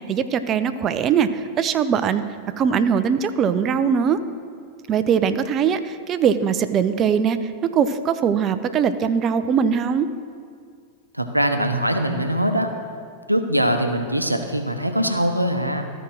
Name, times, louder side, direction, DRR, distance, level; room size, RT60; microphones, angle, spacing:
voice 1, 0.1-2.2 2.6-4.2 4.9-7.4 7.7-10.1, right 7 dB, 30° right, 11 dB, 0.6 m, -21 dB
voice 2, 11.1-12.7 13.3-15.9, equal, 85° right, 6 dB, 0.8 m, -22 dB
13.5 x 5.0 x 6.1 m, 2.1 s
figure-of-eight pair, 90°, 0 cm